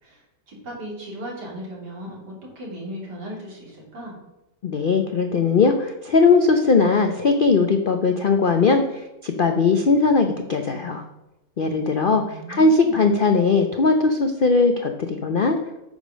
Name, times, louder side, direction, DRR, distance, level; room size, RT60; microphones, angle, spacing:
voice 1, 0.0-4.2 12.0-13.0, equal, 65° right, -3 dB, 3.3 m, -37 dB
voice 2, 4.6-8.8 9.2-11.0 11.6-12.2 12.5-15.6, left 4 dB, 90° left, 6 dB, 0.4 m, -19 dB
9.0 x 5.1 x 6.3 m, 0.96 s
omnidirectional pair, 1.9 m